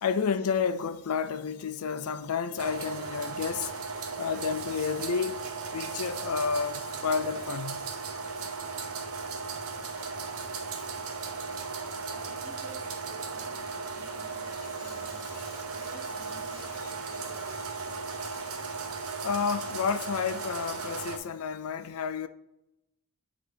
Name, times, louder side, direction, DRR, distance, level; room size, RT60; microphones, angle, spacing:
voice 1, 0.0-3.7 4.2-5.4 5.7-7.9 19.2-22.3, left 6 dB, 85° left, 0.4 m, -30 dB
sound 1, 2.6-21.2, right 5 dB, 80° right, 0.8 m, -36 dB
voice 2, 12.0-12.8 13.1-18.1, equal, 5° left, 0.7 m, -53 dB
8.2 x 2.9 x 5.0 m
head